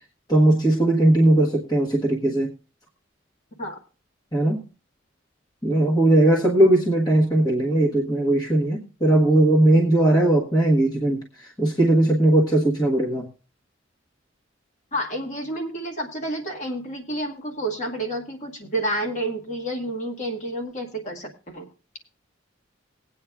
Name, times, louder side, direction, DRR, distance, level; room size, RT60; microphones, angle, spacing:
voice 1, 0.3-2.5 4.3-4.6 5.6-11.2 11.6-13.3, right 1 dB, 20° left, -2 dB, 1.2 m, -19 dB
voice 2, 14.9-21.7, right 1 dB, 35° left, 0 dB, 1.5 m, -30 dB
20.5 x 8.6 x 2.3 m, 0.34 s
head